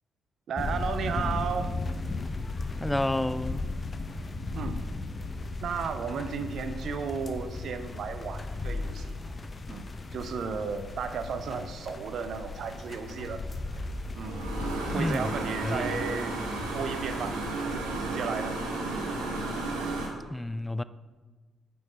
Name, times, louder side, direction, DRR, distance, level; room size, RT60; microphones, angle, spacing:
voice 1, 0.5-1.8 4.5-4.8 5.6-9.2 9.7-13.4 14.1-14.5 14.9-16.4 16.7-17.4 17.6-18.6, right 6 dB, 55° right, 0.6 m, -34 dB
sound 1, 0.6-17.8, left 2 dB, 35° left, 0.8 m, -36 dB
voice 2, 2.8-3.7 14.9-15.3 15.6-16.0 20.3-20.8, left 1 dB, 10° left, 0.4 m, -30 dB
sound 2, 10.7-20.1, right 2 dB, 75° right, 1.7 m, -35 dB
9.7 x 5.6 x 4.2 m
figure-of-eight pair, 40°, 0 cm